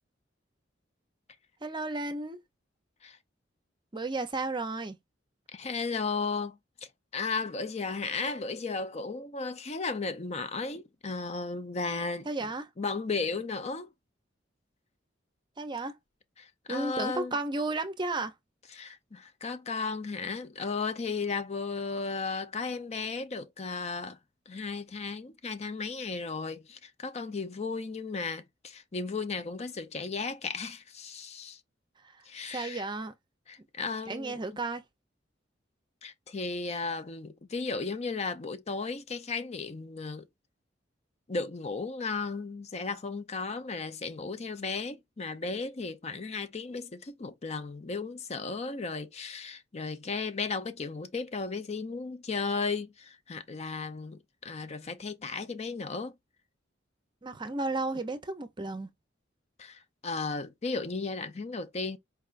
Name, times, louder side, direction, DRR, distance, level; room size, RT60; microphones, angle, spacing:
voice 1, 1.6-2.4 3.9-5.0 12.3-12.7 15.6-16.0 16.7-18.3 32.5-33.1 34.1-34.8 57.2-58.9, right 2 dB, 25° right, 0.6 m, -33 dB
voice 2, 5.5-6.6 7.1-12.3 12.8-13.9 16.4-17.4 18.7-24.2 24.5-31.6 32.3-32.8 33.5-34.4 36.0-40.3 41.3-56.1 59.6-62.0, left 4 dB, 35° left, 0.6 m, -35 dB
4.7 x 3.3 x 2.5 m
head